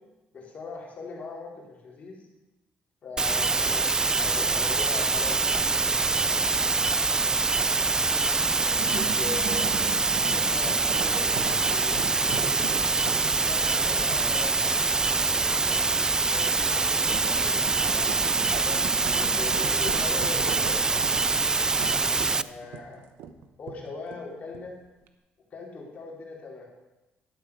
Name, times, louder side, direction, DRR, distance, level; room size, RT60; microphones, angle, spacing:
voice 1, 0.3-2.2 3.0-6.5 8.6-9.7 10.3-12.7 13.5-15.7 16.3-18.8 19.3-20.8 21.3-21.4 22.3-23.1 23.6-24.7 25.5-26.7, left 4 dB, 40° left, -3 dB, 4.2 m, -40 dB
sound 1, 3.2-22.4, right 3 dB, 20° right, 0.4 m, -24 dB
sound 2, 7.5-24.8 25.1-25.2, right 7 dB, 85° right, 1.0 m, -40 dB
12.5 x 11.0 x 4.9 m, 1.0 s
cardioid pair, 110°, 4 cm